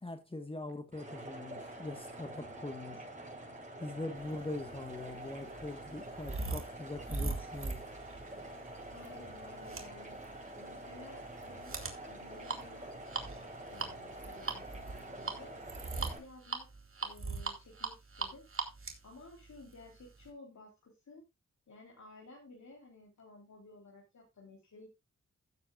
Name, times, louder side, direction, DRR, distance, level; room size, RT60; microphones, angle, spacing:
voice 1, 0.0-3.0 3.8-7.8, left 2 dB, 20° left, 1.5 m, -42 dB
sound 1, 0.9-16.2, right 1 dB, 25° right, 6.2 m, -47 dB
sound 2, 4.6-20.3, right 3 dB, 45° right, 2.4 m, -41 dB
voice 2, 8.9-10.2 10.6-12.9 13.7-15.5 16.0-16.7 17.0-18.5 19.0-21.2 21.7-24.9, left 2 dB, 65° left, 3.6 m, -54 dB
15.5 x 7.8 x 2.4 m
cardioid pair, 75°, 30 cm